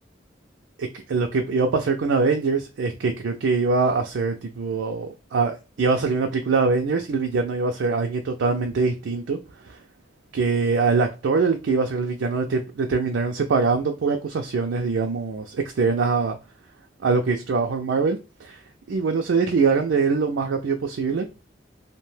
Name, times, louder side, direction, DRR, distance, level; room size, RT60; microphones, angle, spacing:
voice 1, 0.8-9.4 9.7-9.8 10.3-16.4 17.0-18.6 18.9-21.3, right 4 dB, 85° right, 0.4 m, -23 dB
2.7 x 2.1 x 3.1 m
head